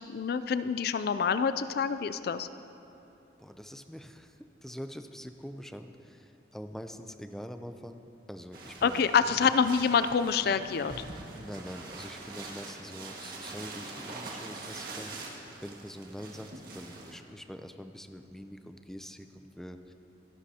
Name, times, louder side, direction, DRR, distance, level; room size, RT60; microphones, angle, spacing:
voice 1, 0.0-2.5 8.8-10.9, left 6 dB, 55° left, 12 dB, 0.4 m, -27 dB
voice 2, 3.4-9.5 11.4-19.9, equal, ahead, 7 dB, 0.5 m, -44 dB
sound 1, 8.5-17.2, right 2 dB, 55° right, 1.8 m, -44 dB
25.5 x 11.5 x 2.8 m, 2.8 s
head